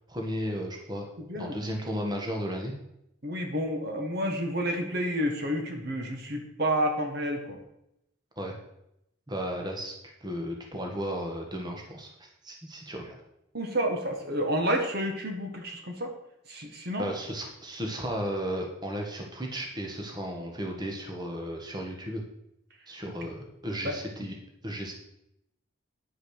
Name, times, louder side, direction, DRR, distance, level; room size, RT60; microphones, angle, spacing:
voice 1, 0.1-1.1 1.3-2.7 8.4-8.5 9.3-9.9 10.2-13.2 17.0-22.2 22.9-24.4 24.6-24.9, equal, 20° right, 1 dB, 1.5 m, -34 dB
voice 2, 1.2-1.6 3.2-7.6 13.5-16.1 16.5-17.1 23.2-23.3 23.8-24.0, equal, 50° right, 4 dB, 1.6 m, -30 dB
10.0 x 6.3 x 6.5 m, 0.81 s
head